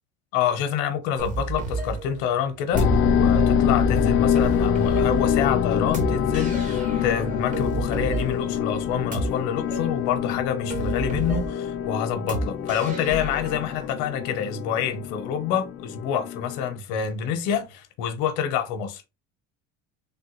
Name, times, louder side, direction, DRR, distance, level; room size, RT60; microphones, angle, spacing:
voice 1, 0.3-19.1, left 8 dB, 75° left, 0.8 m, -27 dB
sound 1, 1.2-13.9, right 3 dB, 25° right, 0.8 m, -33 dB
sound 2, 2.7-16.8, left 7 dB, 45° left, 0.4 m, -25 dB
3.4 x 2.2 x 2.9 m
cardioid pair, 140°, 30 cm